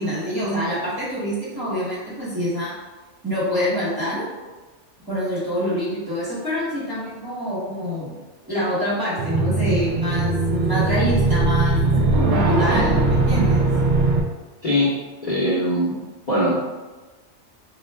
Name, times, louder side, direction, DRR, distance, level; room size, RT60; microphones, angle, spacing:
voice 1, 0.0-2.7 3.2-4.2 5.0-8.1 8.5-11.8 12.2-13.7, equal, 20° right, -8 dB, 1.0 m, -26 dB
sound 1, 9.2-14.2, right 2 dB, 65° right, 0.8 m, -20 dB
voice 2, 15.2-15.9 16.3-16.6, left 1 dB, 40° left, -8 dB, 0.9 m, -20 dB
3.9 x 2.3 x 3.3 m, 1.2 s
omnidirectional pair, 1.3 m